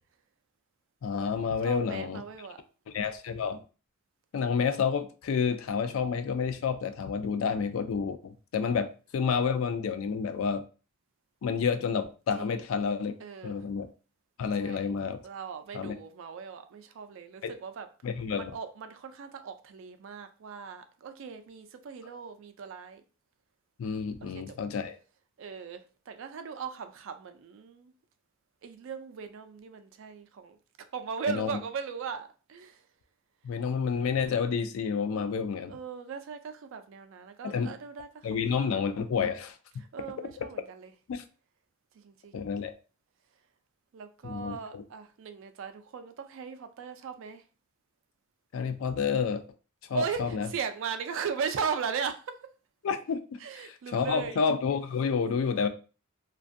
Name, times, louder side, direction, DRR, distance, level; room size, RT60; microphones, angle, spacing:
voice 1, 1.0-2.2 2.9-3.6 4.3-8.9 9.1-10.6 11.4-13.1 13.4-13.9 14.4-15.2 15.7-15.9 17.4-17.5 18.0-18.5 23.8-25.0 31.3-31.5 33.4-35.7 37.4-37.7 38.2-39.6 41.1-41.2 42.3-42.7 44.2-44.8 48.5-49.4 49.9-50.5 52.8-53.2 53.6-55.7, left 6 dB, 70° left, 0.3 m, -29 dB
voice 2, 1.6-2.6 12.3-12.6 13.2-13.5 14.6-14.9 15.2-17.9 18.3-23.0 24.2-24.5 25.4-27.9 28.6-30.6 30.9-32.8 35.7-38.7 39.9-40.9 41.9-42.5 43.9-47.4 49.9-52.4 53.4-54.4, right 6 dB, 65° right, 0.3 m, -38 dB
2.5 x 2.2 x 2.5 m
head